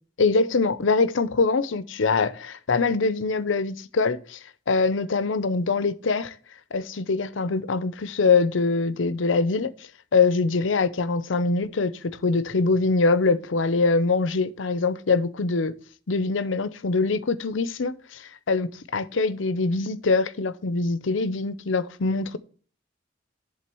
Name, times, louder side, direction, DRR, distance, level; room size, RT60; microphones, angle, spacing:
voice 1, 0.2-4.4 4.7-6.3 6.7-9.7 10.1-15.8 16.1-22.4, left 4 dB, 75° left, 0.6 m, -23 dB
10.5 x 3.8 x 6.8 m
head